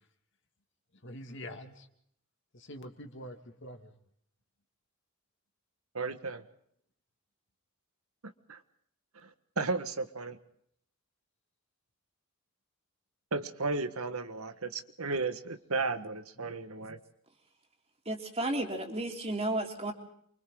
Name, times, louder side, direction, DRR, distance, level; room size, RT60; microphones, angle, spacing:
voice 1, 1.0-1.9 2.5-3.9 16.4-16.6, equal, 55° left, 6 dB, 2.3 m, -45 dB
voice 2, 5.9-6.4 8.2-8.6 9.2-10.4 13.3-17.0, right 3 dB, 85° right, 9 dB, 1.6 m, -34 dB
voice 3, 18.1-19.9, right 1 dB, 30° right, 2 dB, 3.4 m, -33 dB
29.0 x 25.0 x 3.9 m, 0.70 s
head